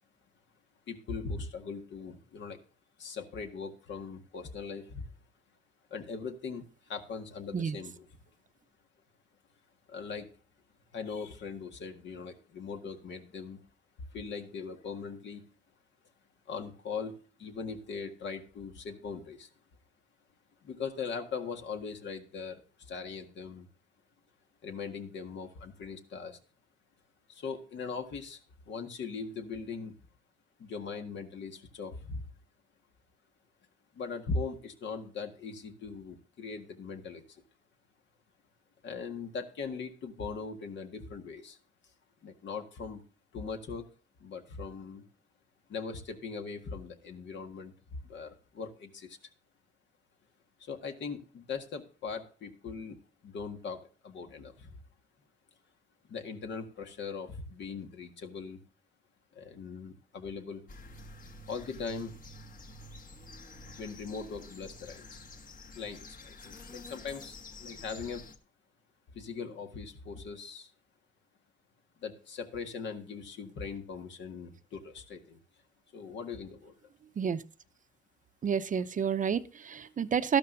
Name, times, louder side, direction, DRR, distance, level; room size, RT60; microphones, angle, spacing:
voice 1, 0.9-2.6 3.0-5.0 5.9-6.6 6.9-8.1 9.9-10.3 10.9-13.6 14.1-15.4 16.5-19.5 20.6-22.6 22.9-23.7 24.6-26.4 27.3-28.4 28.7-29.9 30.6-32.3 34.0-37.2 38.8-41.6 42.2-43.0 43.3-43.9 44.2-45.0 45.7-47.7 48.0-49.2 50.6-53.0 53.2-54.7 56.1-58.6 59.4-60.6 61.5-62.1 63.8-65.2 65.8-68.2 69.1-70.7 72.0-75.4 75.9-76.7, left 5 dB, 65° left, 5 dB, 1.8 m, -40 dB
sound 1, 60.7-68.4, left 2 dB, 45° left, 1.4 m, -49 dB
voice 2, 78.4-80.4, right 7 dB, 40° right, 12 dB, 0.7 m, -29 dB
12.5 x 12.5 x 2.6 m, 0.37 s
cardioid pair, 90°, 20 cm